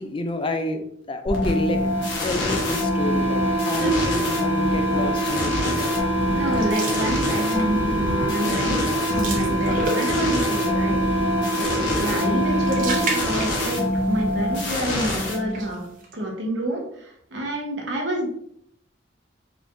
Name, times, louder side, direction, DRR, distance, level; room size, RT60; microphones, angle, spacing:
voice 1, 0.0-1.9 2.2-5.8 11.9-12.3, left 2 dB, 30° left, 7 dB, 0.4 m, -29 dB
sound 1, 1.3-15.9, left 1 dB, 70° left, 1.2 m, -25 dB
sound 2, 1.8-13.9, right 2 dB, 15° right, 1.3 m, -27 dB
voice 2, 6.3-11.0 11.5-15.8 16.1-18.3, right 1 dB, 80° right, 0 dB, 1.2 m, -28 dB
sound 3, 6.5-7.8 8.2-8.4 8.7-10.5 12.2-14.0 14.3-14.4 15.3-16.1, right 2 dB, 45° right, 0.8 m, -33 dB
4.9 x 3.2 x 2.6 m, 0.69 s
head